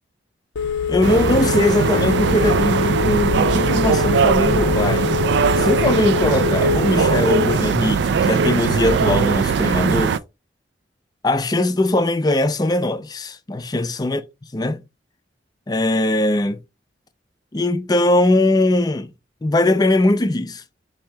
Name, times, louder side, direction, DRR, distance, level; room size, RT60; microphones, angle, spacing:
Telephone, 0.6-7.6, left 7 dB, 85° left, 0.5 m, -24 dB
voice 1, 0.9-5.1 5.6-10.2 11.2-14.2 14.5-14.8 15.7-16.6 17.5-19.1 19.4-20.6, left 1 dB, 20° left, 0.4 m, -20 dB
sound 1, 1.0-10.2, right 6 dB, 65° right, 0.3 m, -20 dB
4.4 x 2.8 x 3.3 m
head